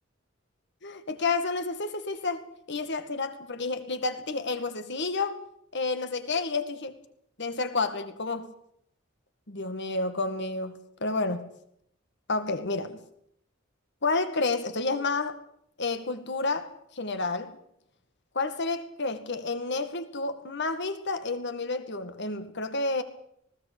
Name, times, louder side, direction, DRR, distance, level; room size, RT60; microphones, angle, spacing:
voice 1, 0.8-5.4 5.7-6.9 7.4-8.5 9.5-11.5 12.3-13.0 14.0-15.4 15.8-17.6 18.4-23.0, left 3 dB, 60° left, 2.1 m, -30 dB
19.5 x 16.5 x 8.5 m
head